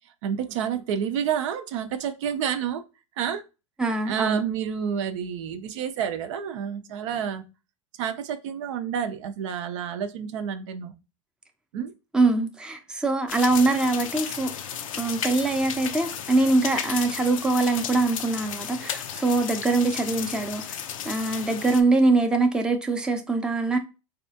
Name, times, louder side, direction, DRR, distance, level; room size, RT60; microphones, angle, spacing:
voice 1, 0.2-2.8 3.2-3.4 4.1-7.4 8.0-10.9 11.7-11.9, right 8 dB, 65° right, 0.5 m, -29 dB
voice 2, 3.8-4.4 12.1-14.5 15.0-20.8 21.0-23.8, right 3 dB, 5° right, 0.5 m, -23 dB
sound 1, 13.3-21.8, left 9 dB, 80° left, 0.4 m, -34 dB
4.1 x 2.3 x 2.7 m
hypercardioid pair, 100°, 17 cm